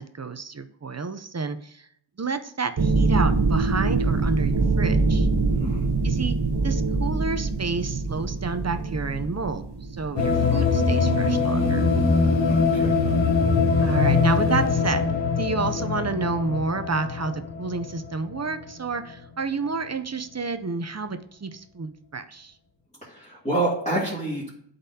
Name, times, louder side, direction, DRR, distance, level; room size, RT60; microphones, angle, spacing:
voice 1, 0.0-1.9 2.2-5.3 6.0-6.4 6.6-9.7 9.9-11.9 13.8-22.5, right 4 dB, 35° right, 9 dB, 0.5 m, -30 dB
sound 1, 2.8-10.6, right 3 dB, 55° right, 0.9 m, -24 dB
sound 2, 10.2-18.4, left 4 dB, 70° left, 1.1 m, -22 dB
voice 2, 12.5-13.0 23.0-24.6, right 2 dB, 15° left, -9 dB, 2.3 m, -28 dB
11.5 x 4.0 x 2.8 m, 0.68 s
wide cardioid pair, 60°, 46 cm